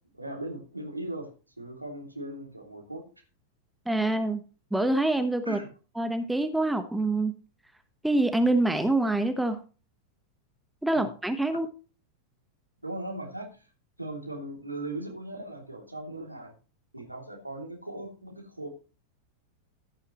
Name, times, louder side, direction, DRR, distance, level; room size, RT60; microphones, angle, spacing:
voice 1, 0.1-1.3 1.6-3.0 5.4-5.7 10.9-11.1 12.8-13.7 14.0-16.5 16.9-18.7, right 1 dB, 85° right, 1 dB, 2.8 m, -38 dB
voice 2, 3.9-4.4 4.7-5.6 6.0-7.3 8.0-9.6 10.8-11.7, right 2 dB, 5° right, 8 dB, 1.1 m, -25 dB
15.5 x 8.8 x 3.1 m, 0.35 s
figure-of-eight pair, 90°, 0 cm